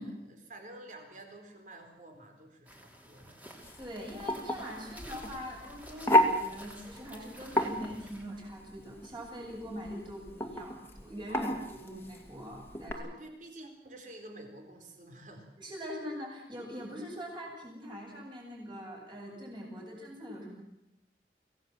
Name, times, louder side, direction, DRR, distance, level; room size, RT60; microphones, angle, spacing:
voice 1, 0.0-3.4 11.3-11.6 12.9-15.5, right 2 dB, 45° right, 5 dB, 4.1 m, -49 dB
sound 1, 2.6-8.2, equal, 10° right, 3.4 m, -51 dB
sound 2, 3.6-12.9, left 1 dB, 15° left, 2.5 m, -32 dB
voice 2, 3.8-13.1 15.6-20.6, equal, 25° right, -1 dB, 7.9 m, -43 dB
25.5 x 17.5 x 7.8 m, 0.87 s
head